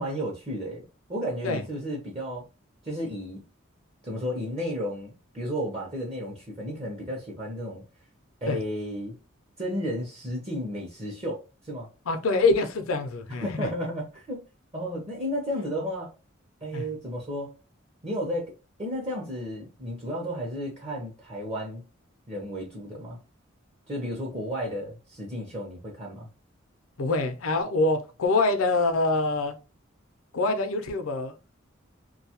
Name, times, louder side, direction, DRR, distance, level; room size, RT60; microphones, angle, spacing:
voice 1, 0.0-2.5 2.8-3.4 4.0-7.8 8.4-9.2 9.6-11.9 13.4-14.4 14.7-16.1 16.6-17.5 18.0-21.8 22.3-23.2 23.9-26.3, equal, 30° right, 0.7 m, -33 dB
voice 2, 12.1-13.7 16.7-16.9 27.0-29.6 30.3-31.3, left 3 dB, 80° left, 0.5 m, -25 dB
2.6 x 2.3 x 2.8 m
head